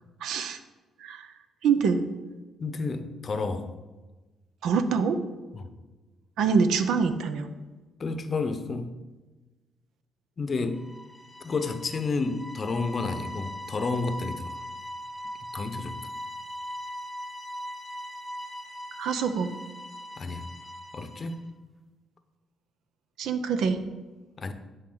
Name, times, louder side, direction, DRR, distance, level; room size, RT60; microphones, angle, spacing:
voice 1, 0.2-0.6 1.0-1.3 1.6-2.0 4.6-5.2 6.4-7.5 19.0-19.5 23.2-23.8, right 5 dB, 80° right, 9 dB, 0.7 m, -25 dB
voice 2, 2.6-3.7 5.5-5.7 8.0-8.9 10.4-10.9 11.4-14.6 15.5-16.0 20.2-20.5 20.9-21.5 24.4-24.5, left 3 dB, 40° left, 9 dB, 0.7 m, -31 dB
sound 1, 10.7-21.4, equal, 5° left, 0.9 m, -40 dB
10.5 x 4.7 x 3.9 m, 1.2 s
cardioid pair, 90°, 0 cm